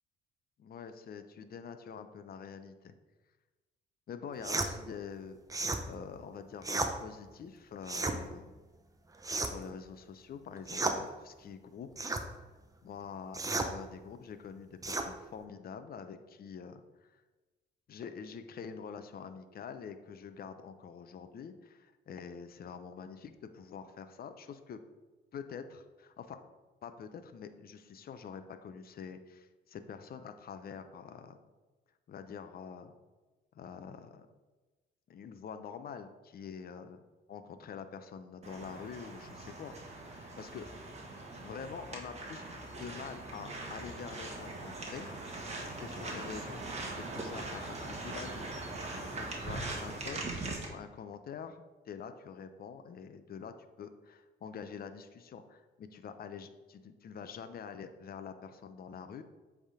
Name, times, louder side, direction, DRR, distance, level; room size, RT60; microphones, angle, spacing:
voice 1, 0.6-2.9 4.1-5.4 5.8-8.5 9.4-12.1 12.8-17.2 17.9-24.8 25.3-26.4 26.8-31.4 32.1-32.9 33.5-34.3 35.1-37.0 37.3-39.7 40.1-40.7 41.4-42.4 42.8-45.1 45.8-46.6 46.9-48.5 49.2-59.2, left 6 dB, 50° left, 9 dB, 0.6 m, -46 dB
sound 1, 4.4-4.7 5.5-5.8 6.6-6.9 7.8-8.2 9.2-9.7 10.7-11.0 12.0-12.3 13.3-13.7 14.8-15.1, right 2 dB, 15° right, 0.7 m, -33 dB
sound 2, 38.4-50.7, right 2 dB, 35° right, 1.6 m, -41 dB
7.9 x 3.6 x 4.9 m, 1.2 s
cardioid pair, 90°, 20 cm